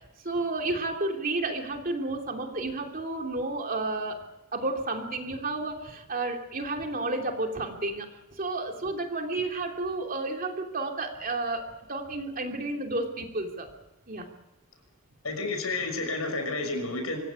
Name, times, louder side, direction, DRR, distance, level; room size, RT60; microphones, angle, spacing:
voice 1, 0.2-4.2 4.5-8.1 8.3-13.7 14.1-14.3, right 2 dB, 40° right, 3 dB, 3.0 m, -31 dB
voice 2, 15.2-17.2, left 3 dB, 80° left, 5 dB, 6.1 m, -30 dB
25.5 x 15.5 x 8.3 m, 1.0 s
head